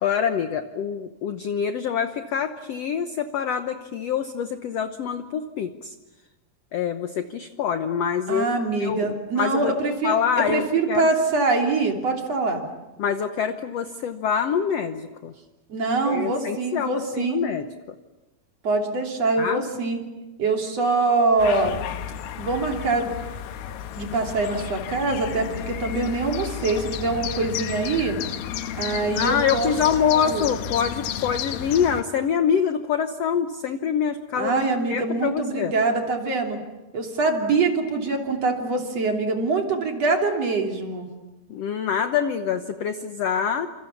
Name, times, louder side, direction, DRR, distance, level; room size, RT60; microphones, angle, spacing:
voice 1, 0.0-5.9 6.7-8.5 8.8-9.7 10.0-11.1 13.0-15.3 16.1-17.7 19.4-19.6 29.1-34.6 34.9-35.7 41.5-43.7, left 7 dB, 70° left, 8 dB, 1.6 m, -25 dB
voice 2, 8.3-12.6 15.7-17.4 18.6-20.0 20.4-21.8 22.4-23.1 24.0-28.2 28.8-29.7 30.0-30.5 34.4-36.6 36.9-41.1, right 3 dB, 45° right, 2 dB, 3.9 m, -24 dB
sound 1, 21.4-32.0, left 9 dB, 85° left, 3.1 m, -32 dB
29.0 x 27.0 x 7.2 m, 1.1 s
omnidirectional pair, 4.2 m